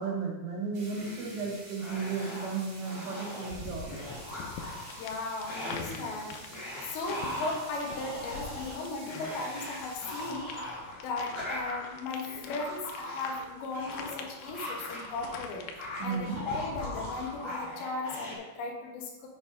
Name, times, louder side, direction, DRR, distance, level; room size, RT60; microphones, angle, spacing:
voice 1, 0.0-3.9 16.0-16.4, right 5 dB, 90° right, -1 dB, 4.3 m, -34 dB
sound 1, 0.7-10.3, right 1 dB, 45° right, 3.4 m, -49 dB
sound 2, 0.9-1.5 1.8-2.6 2.8-3.5 3.8-5.1 5.4-6.1 6.5-15.4 15.6-18.3, left 1 dB, 15° left, 0.9 m, -40 dB
sound 3, 3.5-17.5, left 5 dB, 90° left, 3.1 m, -45 dB
voice 2, 5.0-6.4 6.9-10.5 11.0-19.3, left 3 dB, 75° left, 0 dB, 3.3 m, -37 dB
7.9 x 6.4 x 4.9 m, 1.1 s
omnidirectional pair, 5.4 m